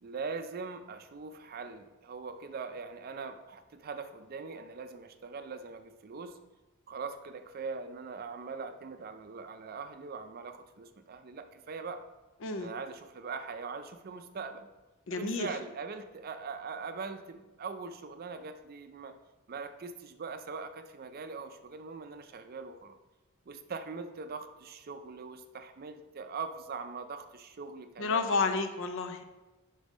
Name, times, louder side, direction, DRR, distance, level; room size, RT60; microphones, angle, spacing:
voice 1, 0.0-6.4 6.9-12.1 12.6-14.7 15.1-19.2 19.5-23.0 23.5-28.3, right 4 dB, 45° right, 9 dB, 0.5 m, -41 dB
voice 2, 15.1-15.5 28.0-29.2, left 4 dB, 65° left, 8 dB, 0.6 m, -30 dB
5.3 x 5.3 x 5.0 m, 1.1 s
head